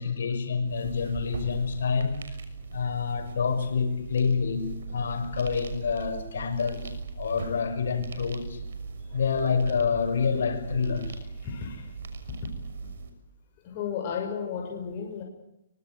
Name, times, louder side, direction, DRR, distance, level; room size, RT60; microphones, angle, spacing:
voice 1, 0.0-2.2 2.7-8.6 9.1-11.2, left 5 dB, 80° left, 6.3 m, -28 dB
sound 1, 0.6-13.1, right 5 dB, 80° right, 6.1 m, -39 dB
voice 2, 11.4-11.8 13.7-15.2, left 7 dB, 40° left, 5.9 m, -33 dB
24.5 x 23.5 x 7.9 m
hypercardioid pair, 145°, 0 cm